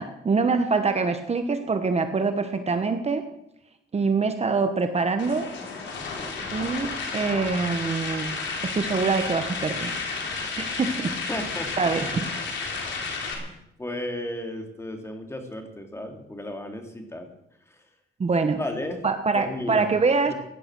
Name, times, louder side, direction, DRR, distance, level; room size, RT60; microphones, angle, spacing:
voice 1, 0.0-3.2 3.9-5.5 6.5-8.4 8.6-10.0 10.5-11.1 11.8-12.1 18.2-18.6 19.0-20.3, right 4 dB, 35° right, 8 dB, 1.3 m, -24 dB
sound 1, 5.2-13.3, left 4 dB, 80° left, 3.9 m, -32 dB
voice 2, 6.1-6.5 10.9-11.9 13.4-17.3 17.7-17.8 18.5-19.0 19.3-19.9 20.3-20.4, left 1 dB, 15° left, 4 dB, 2.8 m, -34 dB
17.0 x 11.0 x 6.3 m, 0.82 s
cardioid pair, 110°, 19 cm